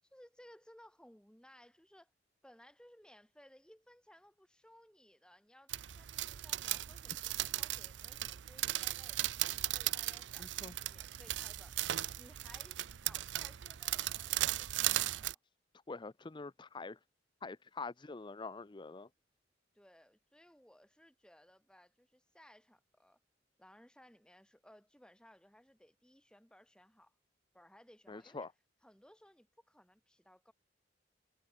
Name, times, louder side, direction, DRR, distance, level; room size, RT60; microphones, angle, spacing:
voice 1, 0.1-2.1 2.4-11.8 12.2-15.4 19.7-23.2 23.6-27.1 27.5-28.5 28.8-30.5, equal, 5° left, 5.7 m, -61 dB
sound 1, 5.7-15.4, right 14 dB, 75° right, 0.5 m, -37 dB
voice 2, 10.4-10.7 15.9-17.0 17.4-19.1 28.1-28.5, left 3 dB, 25° left, 0.6 m, -45 dB
head